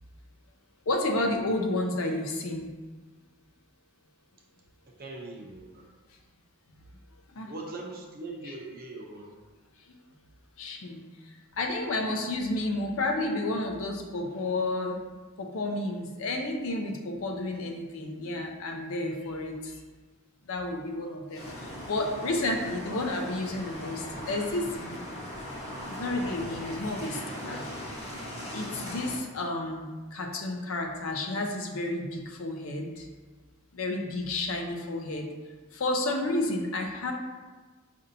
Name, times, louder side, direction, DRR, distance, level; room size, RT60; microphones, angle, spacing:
voice 1, 0.9-2.7 7.4-7.5 8.4-8.5 10.6-15.0 15.4-19.8 20.5-24.9 25.9-27.7 28.5-33.1 33.7-35.3 35.7-37.1, left 2 dB, 65° left, 3 dB, 0.5 m, -31 dB
voice 2, 5.0-5.8 7.5-9.3, right 2 dB, 40° right, 0 dB, 0.6 m, -41 dB
sound 1, 21.3-29.2, equal, 30° left, 0.8 m, -39 dB
5.2 x 2.6 x 2.6 m, 1.3 s
head